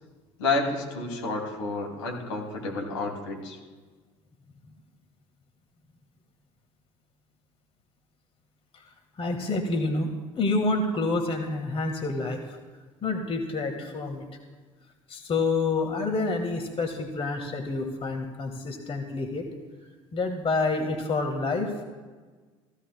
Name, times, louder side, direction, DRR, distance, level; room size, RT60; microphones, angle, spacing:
voice 1, 0.4-3.6, left 3 dB, 80° left, 0 dB, 2.6 m, -30 dB
voice 2, 9.2-10.1 10.4-12.6 13.0-14.3 15.1-19.5 20.1-21.8, left 3 dB, 35° left, 5 dB, 1.6 m, -28 dB
15.5 x 15.0 x 2.2 m, 1.4 s
hypercardioid pair, 65°, 16 cm